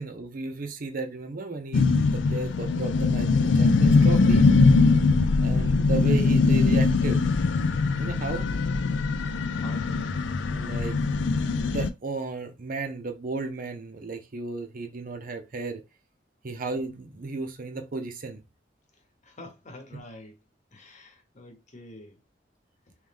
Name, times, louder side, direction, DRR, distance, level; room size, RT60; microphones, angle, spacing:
voice 1, 0.0-4.5 5.4-7.3 7.9-8.4 10.5-11.0 11.6-15.8 16.4-18.4, right 3 dB, 50° right, 0.6 m, -34 dB
sound 1, 1.7-11.9, left 3 dB, 80° left, 0.4 m, -22 dB
voice 2, 19.2-20.3 20.7-22.1, left 2 dB, 40° left, 1.0 m, -46 dB
3.3 x 3.1 x 3.5 m
head